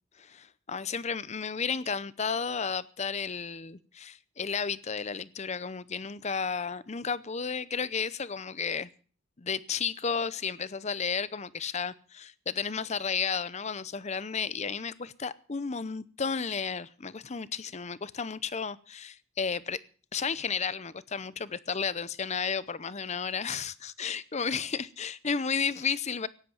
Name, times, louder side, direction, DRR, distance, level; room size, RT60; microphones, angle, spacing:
voice 1, 0.2-8.9 9.4-19.8 20.1-26.3, left 6 dB, 35° left, 0.7 m, -33 dB
16.5 x 10.5 x 7.1 m
head